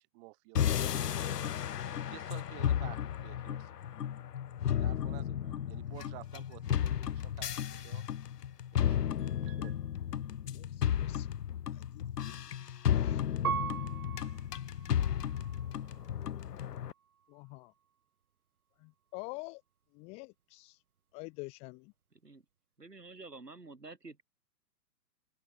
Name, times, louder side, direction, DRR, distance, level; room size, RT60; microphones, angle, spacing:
voice 1, 0.0-1.5 1.8-3.8 4.8-8.1 8.7-9.8, right 27 dB, 35° right, 5.0 m, -52 dB
sound 1, 0.5-16.9, left 9 dB, 75° left, 0.7 m, -33 dB
voice 2, 9.2-9.6 10.5-11.3 11.7-12.4 12.9-13.2 17.3-17.7 18.8-19.6 19.9-20.8 21.1-21.9, left 28 dB, 15° left, 0.6 m, -47 dB
Piano, 13.4-16.2 16.8-17.5, right 8 dB, 65° right, 2.9 m, -40 dB
voice 3, 22.8-24.2, right 3 dB, 85° right, 6.2 m, -49 dB
open air
figure-of-eight pair, 120°, 47 cm